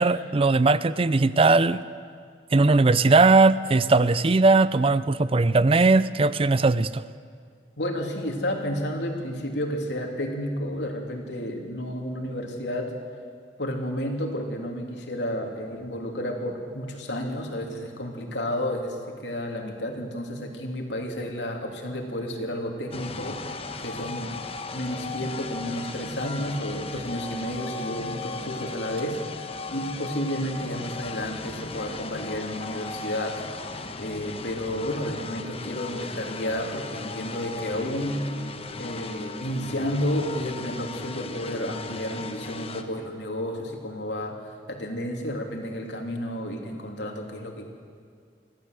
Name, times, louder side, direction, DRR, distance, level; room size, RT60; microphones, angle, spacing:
voice 1, 0.0-1.8 2.5-7.0, right 3 dB, 30° right, 16 dB, 0.5 m, -19 dB
voice 2, 7.8-12.9 13.6-23.4 23.8-24.3 24.7-29.2 29.7-33.4 34.0-38.2 38.8-47.7, equal, 75° left, 2 dB, 3.1 m, -31 dB
sound 1, 22.9-42.8, left 3 dB, 35° left, 1.1 m, -37 dB
23.5 x 15.0 x 8.2 m, 2.1 s
head